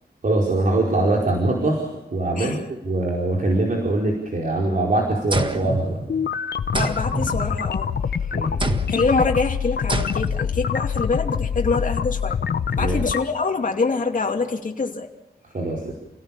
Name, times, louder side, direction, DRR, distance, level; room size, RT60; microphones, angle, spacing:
voice 1, 0.2-6.0 8.3-8.8 12.7-13.0 15.5-15.9, right 2 dB, 55° right, -2 dB, 4.8 m, -23 dB
sound 1, 5.3-6.4 6.7-8.0 8.6-9.1 9.9-10.5, right 2 dB, 30° right, 1.6 m, -27 dB
sound 2, 6.1-13.2, left 7 dB, 85° left, 0.9 m, -25 dB
voice 2, 6.7-8.3 8.9-12.4 12.7-15.1, left 4 dB, 50° left, 1 dB, 2.6 m, -25 dB
29.0 x 18.0 x 7.2 m, 0.93 s
wide cardioid pair, 90°, 17 cm